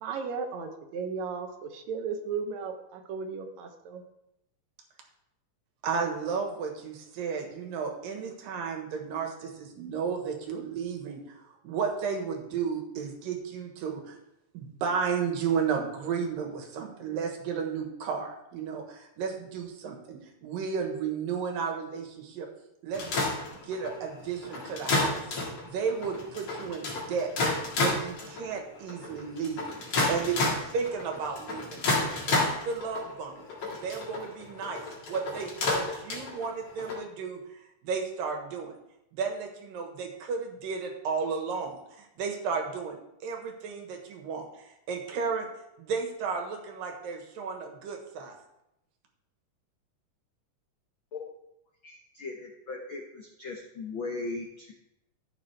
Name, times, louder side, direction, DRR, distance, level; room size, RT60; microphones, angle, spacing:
voice 1, 0.0-4.0, right 5 dB, 65° right, 5 dB, 2.0 m, -35 dB
voice 2, 5.8-11.4 11.6-14.2 14.5-22.5 22.8-27.3 27.8-31.8 32.1-37.4 37.8-38.7 39.1-44.5 44.9-45.5 45.8-48.4, right 6 dB, 85° right, 3 dB, 3.2 m, -33 dB
sound 1, 22.9-37.0, left 2 dB, 50° left, 3.0 m, -31 dB
voice 3, 51.8-54.7, left 3 dB, 85° left, 1 dB, 1.1 m, -38 dB
14.5 x 7.3 x 3.4 m, 0.85 s
omnidirectional pair, 3.9 m